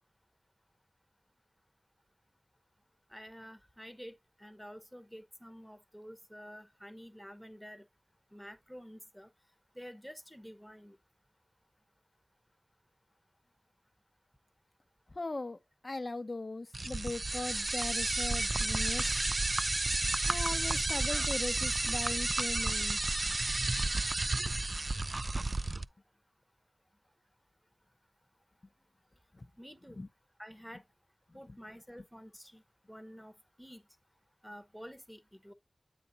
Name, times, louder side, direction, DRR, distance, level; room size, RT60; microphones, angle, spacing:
voice 1, 3.1-7.8 8.3-9.3 9.7-11.0 29.6-30.0 30.4-30.8 31.3-32.6 32.9-33.3 33.6-33.8 34.4-35.5, equal, ahead, 0.9 m, -49 dB
voice 2, 15.1-15.6 15.8-19.1 20.3-23.0 23.3-23.4 29.4-29.5 29.9-30.1 30.7-30.8 31.5-31.6, left 2 dB, 50° left, 0.6 m, -39 dB
sound 1, 16.7-25.8, right 2 dB, 45° right, 0.3 m, -32 dB
8.3 x 4.0 x 3.9 m
wide cardioid pair, 55°, 0 cm